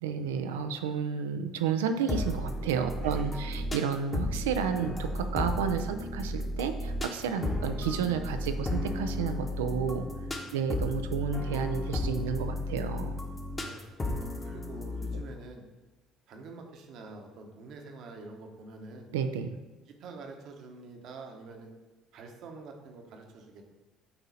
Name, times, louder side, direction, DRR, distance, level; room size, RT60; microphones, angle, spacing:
voice 1, 0.0-10.1 10.5-13.1 19.1-19.6, right 7 dB, 80° right, 8 dB, 0.5 m, -31 dB
sound 1, 2.1-15.2, left 1 dB, 25° left, 1.3 m, -34 dB
voice 2, 3.0-3.4 7.4-7.6 10.3-10.8 13.5-15.6 16.3-19.1 19.9-21.7 22.1-23.6, right 3 dB, 60° right, 3 dB, 1.1 m, -47 dB
8.6 x 4.0 x 4.1 m, 1.2 s
hypercardioid pair, 60°, 0 cm